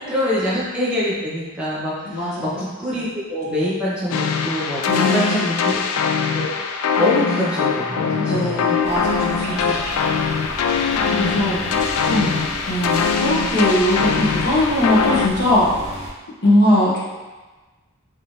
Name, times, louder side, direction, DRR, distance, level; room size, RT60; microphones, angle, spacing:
voice 1, 0.1-5.8 6.3-6.7 7.0-8.7 11.2-11.4 12.1-12.2, left 1 dB, 5° right, -9 dB, 1.0 m, -25 dB
voice 2, 2.1-2.6 4.9-5.6 8.2-9.8 11.1-11.8 12.0-12.3 12.7-15.7 16.4-17.0, left 1 dB, 50° left, -6 dB, 0.8 m, -20 dB
sound 1, 4.1-15.3, left 5 dB, 90° left, 0.3 m, -22 dB
sound 2, 8.8-16.1, right 1 dB, 30° right, 0.5 m, -34 dB
3.3 x 2.8 x 3.4 m, 1.2 s
head